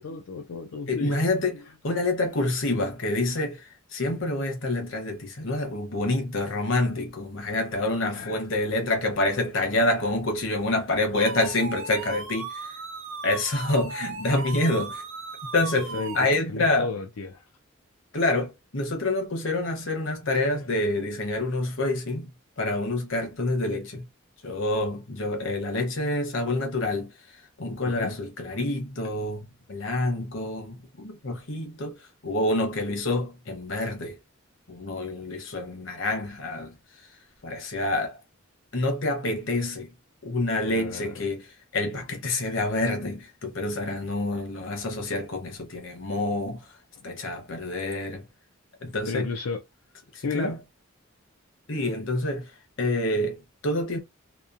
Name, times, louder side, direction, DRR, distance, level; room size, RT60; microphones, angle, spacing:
voice 1, 0.0-1.2 8.1-8.4 15.9-16.2 16.5-17.4 27.9-28.1 40.7-41.2 47.0-47.1 49.1-49.6 50.2-50.5, left 4 dB, 90° left, 0.5 m, -33 dB
voice 2, 0.9-12.8 13.2-15.0 15.5-16.9 18.1-22.3 22.6-24.0 24.4-27.1 27.6-34.2 34.7-36.8 37.4-38.2 38.7-39.9 40.2-46.7 47.0-48.3 48.8-49.3 50.1-50.6 51.7-52.5 52.8-54.0, left 2 dB, 65° left, 0.9 m, -27 dB
sound 1, 11.1-16.3, right 4 dB, 65° right, 0.6 m, -37 dB
2.9 x 2.2 x 2.4 m
head